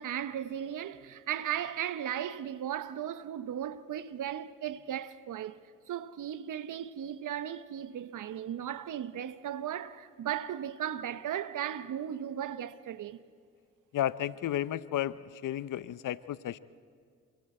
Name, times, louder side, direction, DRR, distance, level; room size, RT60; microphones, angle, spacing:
voice 1, 0.0-13.2, right 10 dB, 65° right, 1.0 m, -36 dB
voice 2, 13.9-16.6, left 12 dB, 65° left, 0.7 m, -33 dB
27.5 x 25.5 x 4.4 m
supercardioid pair, 50°, 33 cm